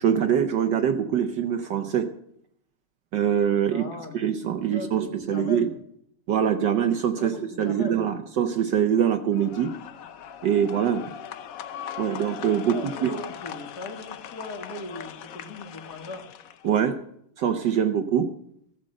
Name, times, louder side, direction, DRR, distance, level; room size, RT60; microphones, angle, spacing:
voice 1, 0.0-2.1 3.1-3.8 4.1-5.7 6.3-7.3 7.6-9.7 10.4-11.0 12.0-12.8 13.0-13.1 16.6-16.9 17.4-18.3, right 8 dB, 65° right, 8 dB, 1.2 m, -23 dB
voice 2, 3.7-5.7 7.1-8.0 9.4-9.8 10.9-11.1 12.7-16.2, left 2 dB, 45° left, 3 dB, 2.3 m, -39 dB
sound 1, 9.3-16.7, left 9 dB, 85° left, 0.7 m, -39 dB
14.5 x 7.7 x 7.6 m, 0.71 s
omnidirectional pair, 2.4 m